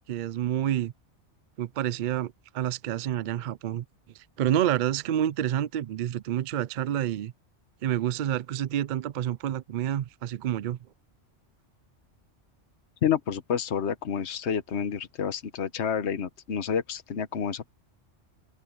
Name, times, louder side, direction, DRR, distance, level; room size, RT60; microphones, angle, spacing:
voice 1, 0.1-0.9 1.6-3.8 4.1-7.3 7.8-10.8, right 11 dB, 60° right, 0.5 m, -28 dB
voice 2, 13.0-17.7, left 8 dB, 70° left, 1.3 m, -29 dB
open air
omnidirectional pair, 1.2 m